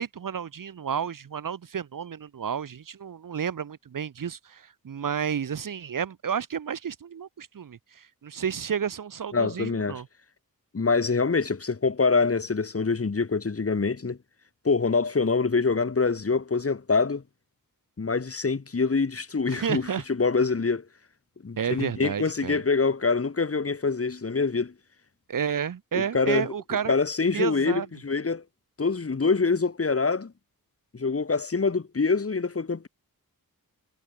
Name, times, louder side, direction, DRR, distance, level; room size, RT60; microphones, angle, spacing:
voice 1, 0.0-10.1 19.5-20.0 21.6-22.6 25.3-26.9 27.3-27.9, right 7 dB, 60° right, 0.8 m, -31 dB
voice 2, 9.3-10.0 10.7-14.2 14.6-17.2 18.0-20.8 21.4-24.7 25.9-26.5 26.9-28.4 28.8-30.3 30.9-32.9, left 4 dB, 40° left, 1.5 m, -25 dB
wide cardioid pair, 85°, 36 cm